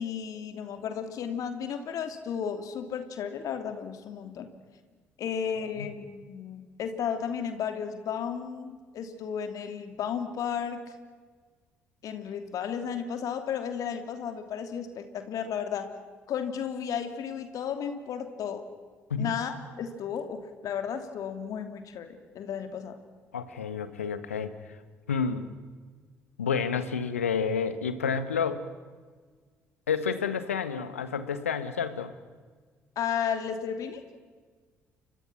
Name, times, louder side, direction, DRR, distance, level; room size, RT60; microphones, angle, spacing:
voice 1, 0.0-4.5 5.2-10.8 12.0-15.9 16.3-18.6 19.2-23.0 33.0-34.0, left 7 dB, 55° left, 7 dB, 2.9 m, -33 dB
voice 2, 23.3-24.5 25.1-25.4 26.4-28.6 29.9-32.1, left 6 dB, 80° left, 12 dB, 1.4 m, -30 dB
30.0 x 25.0 x 6.1 m, 1.5 s
figure-of-eight pair, 50°, 7 cm